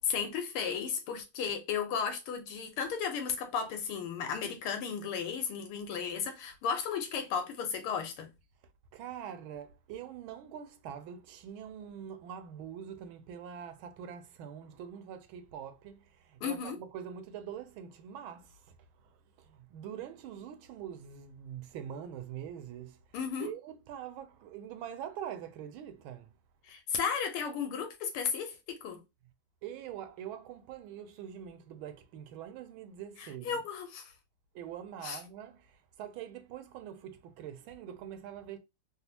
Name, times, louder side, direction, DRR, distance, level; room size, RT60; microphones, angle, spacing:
voice 1, 0.0-8.3 16.4-16.8 23.1-23.5 26.7-29.0 33.5-34.1 35.0-35.2, left 6 dB, 85° left, 1.7 m, -34 dB
voice 2, 8.9-23.0 23.4-26.3 29.6-33.6 34.5-38.6, right 9 dB, 75° right, 1.3 m, -44 dB
4.1 x 2.0 x 2.7 m
omnidirectional pair, 2.3 m